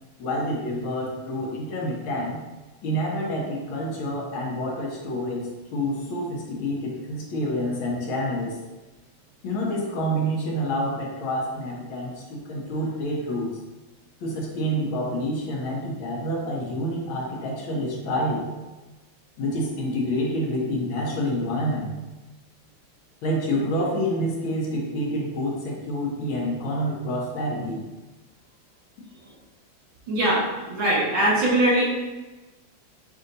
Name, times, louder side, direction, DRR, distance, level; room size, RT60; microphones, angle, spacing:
voice 1, 0.2-2.4 2.8-8.6 9.4-13.5 14.2-18.5 19.4-21.9 23.2-27.8, equal, 85° left, -2 dB, 1.8 m, -28 dB
voice 2, 30.1-31.8, right 1 dB, 85° right, -6 dB, 2.3 m, -22 dB
6.4 x 2.8 x 2.6 m, 1.1 s
omnidirectional pair, 2.2 m